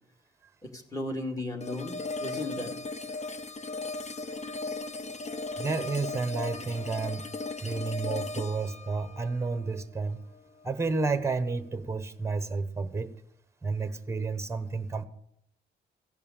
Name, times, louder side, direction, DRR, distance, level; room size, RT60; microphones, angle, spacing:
voice 1, 0.6-2.8, left 1 dB, 15° left, 4 dB, 2.3 m, -35 dB
sound 1, 1.6-10.6, left 3 dB, 35° left, 0.9 m, -37 dB
sound 2, 2.9-3.4 4.1-4.5 5.2-5.5 6.3-6.9 7.5-7.9, left 1 dB, 65° left, 3.2 m, -57 dB
voice 2, 5.6-7.3 7.6-10.2 10.6-13.1 13.6-15.0, right 4 dB, 15° right, 12 dB, 1.0 m, -31 dB
16.0 x 5.5 x 8.8 m, 0.74 s
cardioid pair, 90°, 20 cm